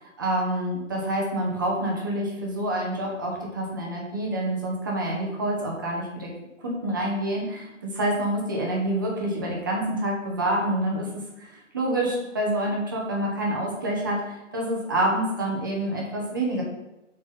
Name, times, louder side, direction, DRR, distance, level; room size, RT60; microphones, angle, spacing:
voice 1, 0.0-6.3 6.6-11.1 11.4-16.6, right 1 dB, 15° right, -2 dB, 0.7 m, -27 dB
7.1 x 4.1 x 5.3 m, 0.96 s
hypercardioid pair, 160°, 39 cm